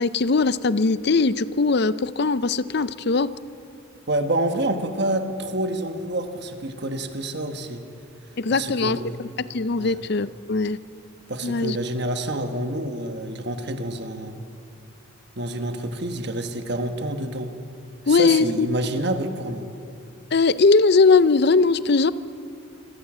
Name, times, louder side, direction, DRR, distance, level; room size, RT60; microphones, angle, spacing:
voice 1, 0.0-3.3 8.4-10.8 11.4-11.8 18.1-18.7 20.3-22.1, left 4 dB, 50° left, 16 dB, 0.5 m, -20 dB
voice 2, 4.1-7.8 8.5-9.2 9.8-10.0 11.3-14.5 15.4-17.5 18.1-19.7, right 1 dB, 50° right, 7 dB, 1.3 m, -28 dB
26.0 x 14.0 x 7.5 m, 2.5 s
head